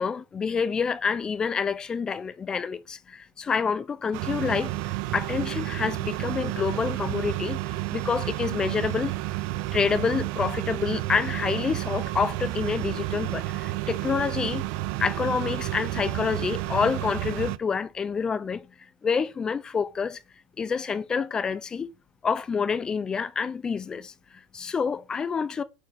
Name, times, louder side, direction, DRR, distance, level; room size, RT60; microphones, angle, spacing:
voice 1, 0.0-4.7 5.1-7.6 7.9-9.2 9.7-14.6 15.0-18.7 19.0-20.2 20.6-21.9 22.2-25.6, left 6 dB, 15° left, 0.4 m, -28 dB
sound 1, 4.1-17.6, right 17 dB, 50° right, 0.4 m, -31 dB
8.1 x 4.6 x 3.4 m
supercardioid pair, 155°, 5 cm